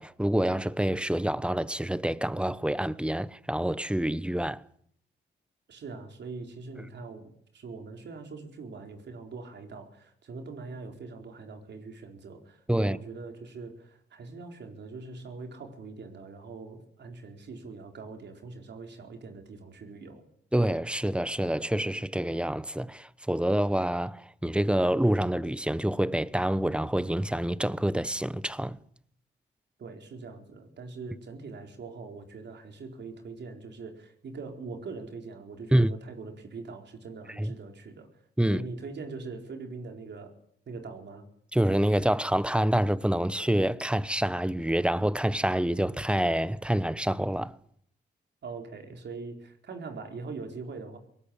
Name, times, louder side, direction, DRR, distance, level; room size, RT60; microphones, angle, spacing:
voice 1, 0.0-4.6 12.7-13.0 20.5-28.8 35.7-35.9 37.4-37.5 38.4-38.7 41.5-47.5, right 1 dB, 5° right, 0.9 m, -27 dB
voice 2, 5.7-20.2 29.8-38.1 38.5-40.4 40.7-41.3 48.4-51.0, right 4 dB, 65° right, 4.4 m, -42 dB
22.0 x 19.0 x 8.7 m
cardioid pair, 85°, 20 cm